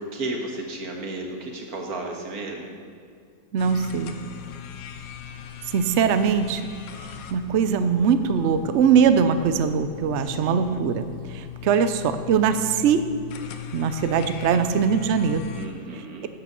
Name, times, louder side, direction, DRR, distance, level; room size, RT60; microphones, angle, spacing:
voice 1, 0.0-2.7 10.2-10.7 15.6-16.2, right 2 dB, 55° right, 1 dB, 1.9 m, -33 dB
voice 2, 3.5-4.1 5.7-6.7 7.3-13.0 13.7-15.5, right 7 dB, 90° right, 10 dB, 0.6 m, -21 dB
sound 1, 3.6-15.7, left 9 dB, 80° left, 1.5 m, -39 dB
sound 2, 7.4-11.2, equal, 25° left, 1.6 m, -43 dB
11.5 x 7.0 x 6.9 m, 2.3 s
omnidirectional pair, 2.0 m